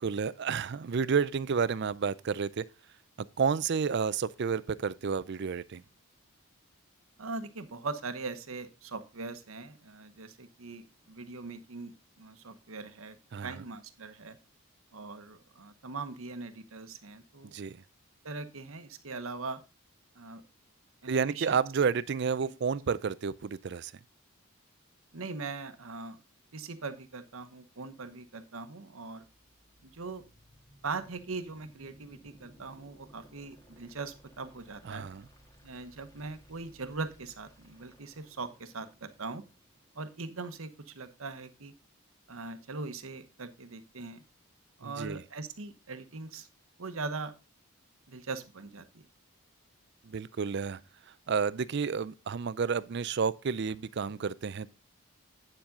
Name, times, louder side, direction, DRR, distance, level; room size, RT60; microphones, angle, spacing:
voice 1, 0.0-2.7 3.4-5.8 13.3-13.6 17.4-17.8 21.1-23.9 34.8-35.2 44.8-45.2 50.1-50.8 51.3-54.8, right 6 dB, 50° right, 0.4 m, -30 dB
voice 2, 7.2-13.2 13.4-14.4 14.9-17.5 18.2-19.6 20.2-20.4 21.0-21.6 22.4-22.5 25.1-26.2 26.5-29.2 29.8-30.2 30.8-35.1 35.6-39.4 39.9-41.7 42.3-44.2 44.8-46.5 46.8-47.3 48.1-49.1, right 3 dB, 75° right, 1.0 m, -41 dB
sound 1, 29.1-41.1, equal, 15° left, 1.6 m, -60 dB
8.9 x 7.2 x 3.7 m
head